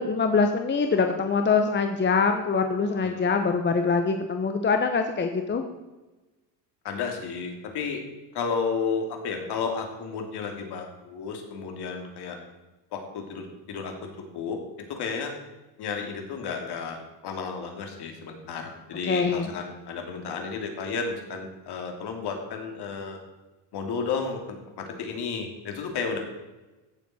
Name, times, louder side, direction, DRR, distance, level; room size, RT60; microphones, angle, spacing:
voice 1, 0.0-5.6 19.1-19.5, left 5 dB, 25° left, 6 dB, 1.0 m, -24 dB
voice 2, 3.0-3.3 6.8-8.0 8.3-12.4 12.9-13.9 14.3-14.6 14.9-15.3 15.8-17.0 17.2-23.2 23.7-26.2, left 5 dB, 55° left, 3 dB, 2.8 m, -32 dB
16.0 x 7.3 x 4.3 m, 1.1 s
supercardioid pair, 95°, 48 cm